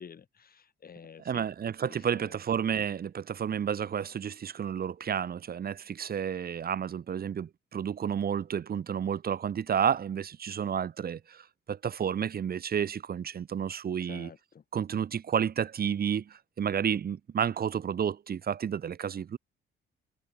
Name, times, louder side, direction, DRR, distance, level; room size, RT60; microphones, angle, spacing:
voice 1, 0.0-1.5 1.9-2.4 14.0-14.6, left 7 dB, 50° left, 7.5 m, -49 dB
voice 2, 1.2-11.4 11.7-14.3 14.7-16.2 16.6-19.4, right 8 dB, 50° right, 1.6 m, -31 dB
cardioid pair, 90°, 20 cm